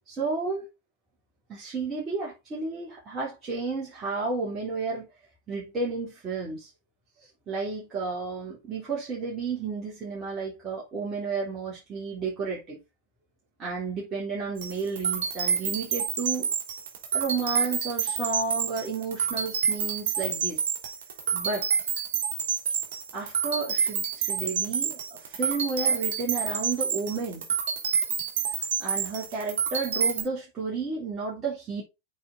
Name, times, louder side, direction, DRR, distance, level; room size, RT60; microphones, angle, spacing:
voice 1, 0.1-0.6 1.5-5.1 5.5-6.7 7.5-12.8 13.6-16.5 17.1-20.6 21.3-21.7 23.1-27.4 28.8-31.8, right 4 dB, 25° right, 3.6 m, -32 dB
sound 1, 14.6-30.2, right 7 dB, 55° right, 3.3 m, -28 dB
7.8 x 5.1 x 3.9 m
figure-of-eight pair, 90°, 0 cm